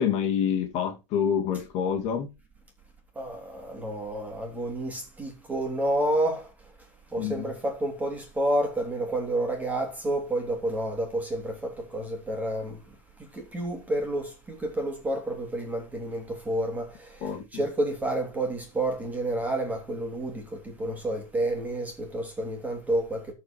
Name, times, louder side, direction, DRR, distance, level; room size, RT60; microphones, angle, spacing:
voice 1, 0.0-2.3 7.2-7.5 17.2-17.4, left 8 dB, 40° left, 2.1 m, -27 dB
voice 2, 3.1-6.5 7.1-12.8 13.2-23.3, right 1 dB, 10° right, 3.2 m, -30 dB
13.0 x 4.7 x 4.5 m
supercardioid pair, 135°, 17 cm